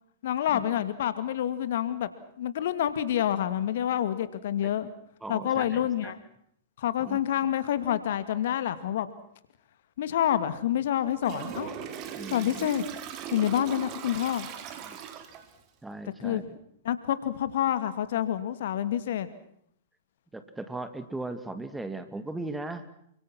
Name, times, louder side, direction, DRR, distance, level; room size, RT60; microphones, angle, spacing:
voice 1, 0.2-2.1 2.4-4.9 5.3-6.2 6.8-9.1 10.0-11.8 12.3-12.8 13.3-14.5 16.2-16.4 16.8-19.3, left 11 dB, 60° left, 13 dB, 2.3 m, -28 dB
voice 2, 5.2-6.1 7.0-7.2 12.1-12.7 14.8-15.0 15.8-16.5 20.3-22.9, right 2 dB, 5° right, 10 dB, 2.5 m, -38 dB
Toilet flush, 11.2-15.6, right 9 dB, 40° right, 3.8 m, -39 dB
29.0 x 25.5 x 6.2 m, 0.68 s
hypercardioid pair, 110°, 0 cm